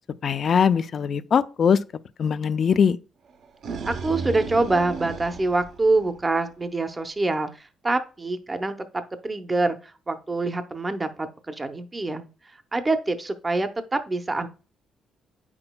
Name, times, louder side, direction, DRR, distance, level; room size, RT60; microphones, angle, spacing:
voice 1, 0.2-1.8 2.2-3.0, left 7 dB, 50° left, 0.4 m, -21 dB
sound 1, 3.3-6.5, right 5 dB, 65° right, 0.7 m, -34 dB
voice 2, 3.9-8.8 9.2-9.8 10.1-12.3 12.7-14.5, right 2 dB, 25° right, 0.7 m, -25 dB
8.6 x 6.0 x 2.2 m
cardioid pair, 90°, 0 cm